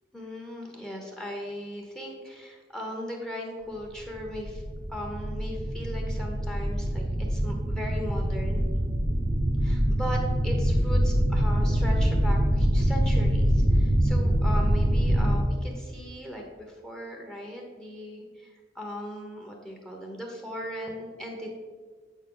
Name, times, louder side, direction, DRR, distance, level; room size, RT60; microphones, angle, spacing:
voice 1, 0.1-4.6 4.9-8.6 9.6-21.5, equal, 5° left, 0 dB, 0.9 m, -38 dB
sound 1, 4.0-15.4, equal, 50° right, 0.8 m, -24 dB
8.2 x 5.2 x 3.8 m, 1.5 s
head